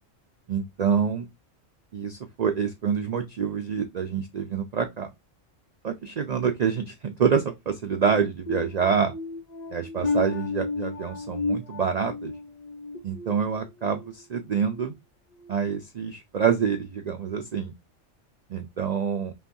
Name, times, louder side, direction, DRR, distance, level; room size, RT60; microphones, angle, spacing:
voice 1, 0.5-1.3 1.9-5.1 5.8-9.1 9.7-12.3 13.0-14.9 15.5-17.7 18.5-19.3, right 6 dB, 90° right, 0.3 m, -26 dB
sound 1, 8.5-14.1 14.5-14.8 15.3-15.5, left 3 dB, 40° left, 0.7 m, -33 dB
5.5 x 2.3 x 2.6 m
omnidirectional pair, 1.3 m